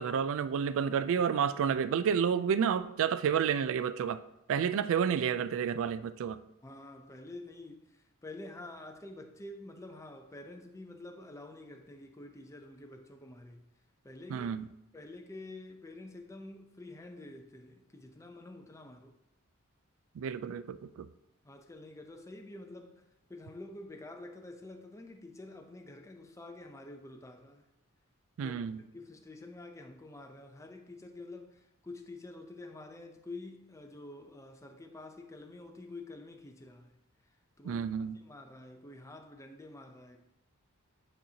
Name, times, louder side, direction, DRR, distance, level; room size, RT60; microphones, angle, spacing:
voice 1, 0.0-4.2 4.5-6.4 14.3-14.7 20.2-21.1 28.4-28.8 37.6-38.2, right 7 dB, 65° right, 0.3 m, -30 dB
voice 2, 6.6-13.6 14.0-14.5 14.9-19.2 21.4-23.0 23.3-27.7 28.4-28.6 28.9-37.0 37.2-40.2, left 2 dB, 15° left, 0.5 m, -48 dB
8.9 x 4.3 x 2.8 m
head